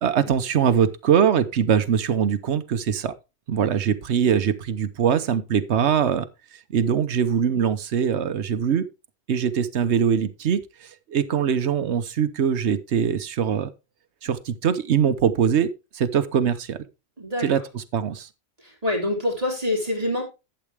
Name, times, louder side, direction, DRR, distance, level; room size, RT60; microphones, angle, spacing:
voice 1, 0.0-3.1 3.5-6.3 6.7-8.9 9.3-13.7 14.2-16.8 17.4-18.3, right 7 dB, 90° right, 1.1 m, -22 dB
voice 2, 17.2-17.5 18.6-20.2, left 1 dB, 35° right, 3.2 m, -26 dB
12.0 x 8.0 x 3.4 m
omnidirectional pair, 1.1 m